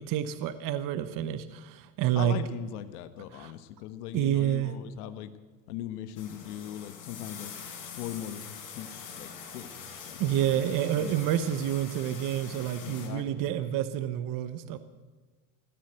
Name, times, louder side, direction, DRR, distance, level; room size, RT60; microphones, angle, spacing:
voice 1, 0.0-2.4 3.3-3.5 4.1-4.7 10.2-14.8, right 11 dB, 45° right, 12 dB, 1.0 m, -29 dB
voice 2, 2.1-5.3 5.7-7.5 7.9-9.7 10.1-10.6 11.0-11.2 12.8-13.5, left 11 dB, 80° left, 11 dB, 1.3 m, -40 dB
sound 1, 6.2-13.1, left 6 dB, 45° left, 4.9 m, -44 dB
16.0 x 10.0 x 8.0 m, 1.4 s
supercardioid pair, 125°, 45 cm